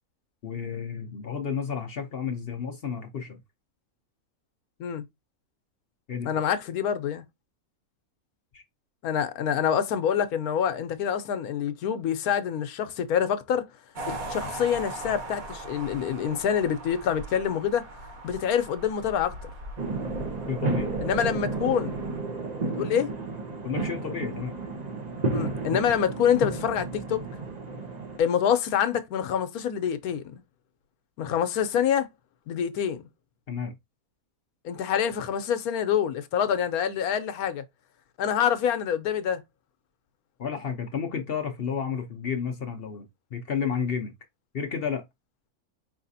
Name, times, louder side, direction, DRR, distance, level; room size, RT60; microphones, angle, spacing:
voice 1, 0.4-3.4 6.1-6.3 8.5-8.6 20.5-20.9 23.6-24.5 33.5-33.7 40.4-44.1 44.5-45.0, left 6 dB, 55° left, 0.7 m, -31 dB
voice 2, 6.3-7.2 9.0-13.7 14.1-17.8 18.2-19.4 21.0-22.0 22.7-23.1 25.3-27.2 28.2-30.4 31.2-32.1 32.5-33.0 34.6-37.6 38.2-39.4, left 8 dB, 80° left, 1.1 m, -26 dB
sound 1, 14.0-22.2, right 1 dB, 70° right, 1.6 m, -40 dB
sound 2, 19.8-28.2, right 3 dB, 35° right, 0.7 m, -32 dB
4.8 x 3.2 x 2.6 m
omnidirectional pair, 1.6 m